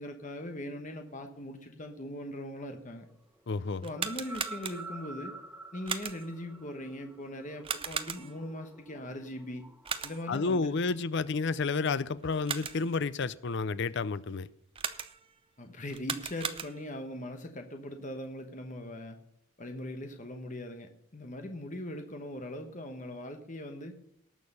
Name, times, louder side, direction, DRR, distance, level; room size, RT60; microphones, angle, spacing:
voice 1, 0.0-3.1 3.8-5.3 5.7-9.6 10.0-10.8 15.6-19.2 19.6-24.0, left 1 dB, 35° left, 1.2 m, -40 dB
sound 1, 3.4-10.9, right 2 dB, 5° right, 1.0 m, -49 dB
voice 2, 3.5-3.8 10.3-14.5, left 4 dB, 50° left, 0.5 m, -30 dB
sound 2, 3.8-5.1 5.9-6.4 7.6-8.5 9.8-10.4 12.2-13.0 14.8-15.4 15.9-17.0, right 6 dB, 25° right, 0.7 m, -37 dB
18.5 x 6.7 x 5.5 m
head